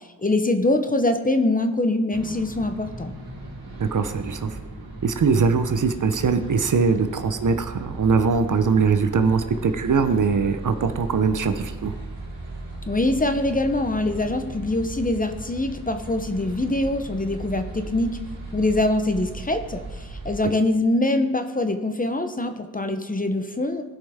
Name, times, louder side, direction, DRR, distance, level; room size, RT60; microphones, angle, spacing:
voice 1, 0.0-3.1 12.9-18.2 18.5-23.8, left 2 dB, 20° left, 8 dB, 0.7 m, -24 dB
sound 1, 2.1-20.4, right 2 dB, 70° right, 3.3 m, -37 dB
voice 2, 3.8-4.6 5.0-11.9, right 5 dB, 55° right, 9 dB, 0.8 m, -21 dB
16.5 x 5.5 x 3.5 m, 1.2 s
cardioid pair, 70°, 37 cm